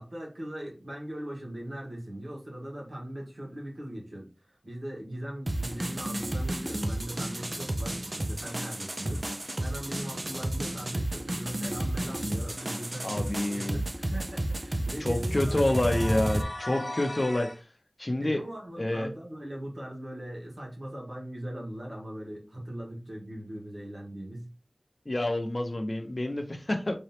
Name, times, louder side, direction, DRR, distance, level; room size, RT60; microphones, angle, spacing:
voice 1, 0.0-9.3 9.6-15.8 16.7-17.2 18.2-24.5, right 1 dB, 70° right, 1.6 m, -40 dB
sound 1, 5.5-16.4, right 1 dB, 45° right, 0.5 m, -32 dB
voice 2, 13.0-13.8 15.0-17.5 18.0-18.4 18.8-19.1 25.1-27.0, left 1 dB, 45° left, 0.6 m, -28 dB
sound 2, 15.4-17.6, left 1 dB, 90° left, 0.9 m, -38 dB
3.7 x 3.1 x 2.9 m
wide cardioid pair, 55°, 0 cm